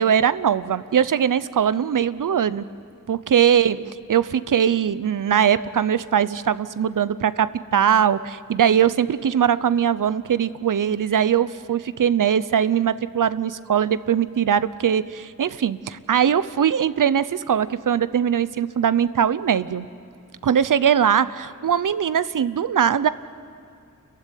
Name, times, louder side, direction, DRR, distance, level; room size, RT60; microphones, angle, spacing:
voice 1, 0.0-2.7 3.1-3.8 4.1-19.9 20.4-23.1, right 8 dB, 80° right, 15 dB, 0.7 m, -21 dB
29.0 x 15.0 x 9.9 m, 2.5 s
wide cardioid pair, 105°, 32 cm